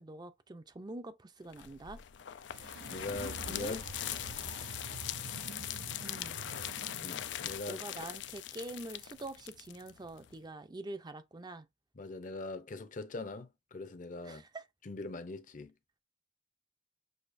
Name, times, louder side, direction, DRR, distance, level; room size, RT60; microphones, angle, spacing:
voice 1, 0.0-2.0 3.1-3.7 6.0-6.4 7.7-11.7 14.2-14.6, right 2 dB, 25° right, 0.6 m, -45 dB
sound 1, 1.5-10.4, left 12 dB, 85° left, 0.4 m, -41 dB
sound 2, 2.5-7.5, right 4 dB, 75° right, 0.6 m, -47 dB
voice 2, 2.8-3.8 7.0-7.8 12.0-14.4 14.8-15.7, left 2 dB, 50° left, 0.7 m, -41 dB
6.4 x 2.8 x 2.6 m
head